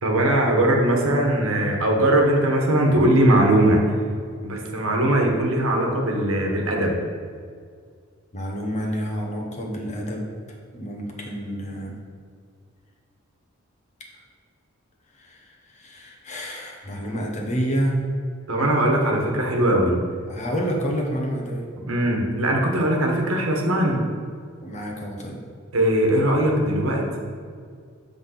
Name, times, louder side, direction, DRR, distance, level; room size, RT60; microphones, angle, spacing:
voice 1, 0.0-3.8 4.4-6.9 18.5-20.0 21.9-24.0 25.7-27.2, right 1 dB, 80° right, 1 dB, 1.2 m, -20 dB
voice 2, 8.3-10.3 10.7-12.0 15.1-18.0 20.3-21.7 24.6-25.4, equal, 35° left, -1 dB, 1.1 m, -29 dB
7.9 x 3.6 x 5.8 m, 2.1 s
head